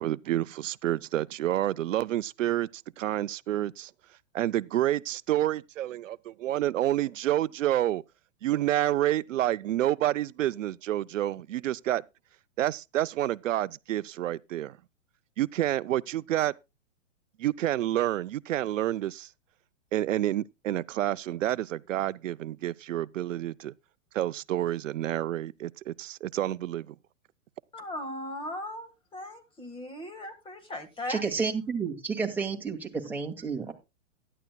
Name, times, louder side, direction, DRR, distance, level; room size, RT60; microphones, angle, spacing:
voice 1, 0.0-3.9 4.3-8.0 8.4-12.0 12.6-14.8 15.4-16.5 17.4-19.3 19.9-23.7 24.1-26.9, right 13 dB, 80° right, 0.5 m, -29 dB
voice 2, 27.7-31.2, left 1 dB, 15° left, 1.6 m, -38 dB
voice 3, 31.1-33.7, right 5 dB, 5° right, 1.9 m, -31 dB
15.5 x 11.0 x 2.2 m
hypercardioid pair, 125°, 38 cm